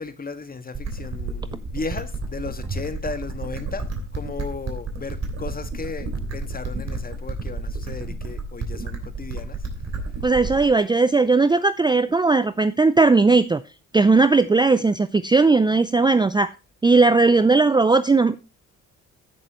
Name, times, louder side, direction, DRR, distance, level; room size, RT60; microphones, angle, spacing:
voice 1, 0.0-9.6, left 4 dB, 25° left, 1.7 m, -35 dB
sound 1, 0.7-10.7, right 3 dB, 50° right, 3.2 m, -31 dB
voice 2, 10.2-13.6 13.9-16.5 16.8-18.4, right 3 dB, 15° right, 0.5 m, -17 dB
15.5 x 6.7 x 3.0 m
cardioid pair, 80°, 33 cm